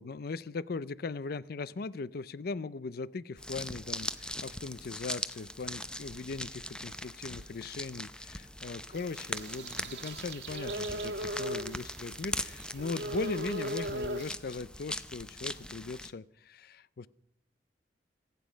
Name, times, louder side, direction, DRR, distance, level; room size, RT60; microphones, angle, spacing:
voice 1, 0.0-17.1, left 4 dB, 60° left, 19 dB, 0.5 m, -39 dB
sound 1, 3.4-16.1, left 1 dB, 5° left, 0.6 m, -41 dB
sound 2, 8.9-14.3, right 1 dB, 75° right, 1.4 m, -38 dB
26.5 x 9.3 x 5.1 m, 0.71 s
head